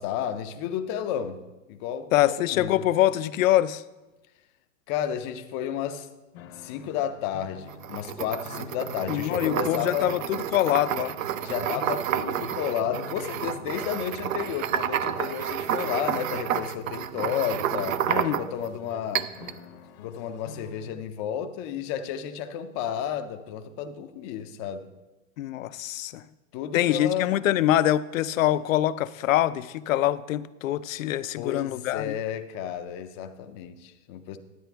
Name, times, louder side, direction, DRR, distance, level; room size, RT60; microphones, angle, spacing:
voice 1, 0.0-1.4 1.7-2.9 4.9-6.1 6.6-10.1 11.4-18.0 18.4-19.3 20.0-24.9 26.5-27.4 31.4-34.4, left 9 dB, 25° left, 0.4 m, -32 dB
voice 2, 2.1-3.8 9.1-11.1 18.1-18.4 25.4-26.2 26.7-32.2, left 13 dB, 85° left, 0.6 m, -24 dB
sound 1, 6.3-21.0, left 7 dB, 50° left, 0.8 m, -46 dB
sound 2, 7.7-18.7 19.1-19.6, right 10 dB, 85° right, 0.6 m, -30 dB
sound 3, 8.2-9.7 10.6-11.1 11.6-11.8 12.4-13.6 14.1-14.2 14.9-15.8, right 4 dB, 35° right, 1.0 m, -49 dB
11.0 x 9.5 x 3.4 m
supercardioid pair, 145°, 39 cm